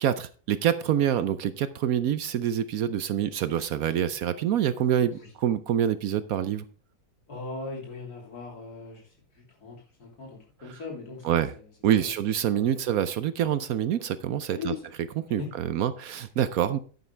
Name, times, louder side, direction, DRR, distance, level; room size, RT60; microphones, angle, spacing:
voice 1, 0.0-6.6 11.2-11.5 11.8-14.7 15.3-16.8, right 10 dB, 70° right, 13 dB, 0.9 m, -26 dB
voice 2, 7.3-11.6 12.0-12.1 12.5-12.8 14.5-14.8 15.4-15.5 16.7-16.8, left 4 dB, 60° left, -1 dB, 3.6 m, -40 dB
10.5 x 9.4 x 3.3 m, 0.39 s
omnidirectional pair, 1.8 m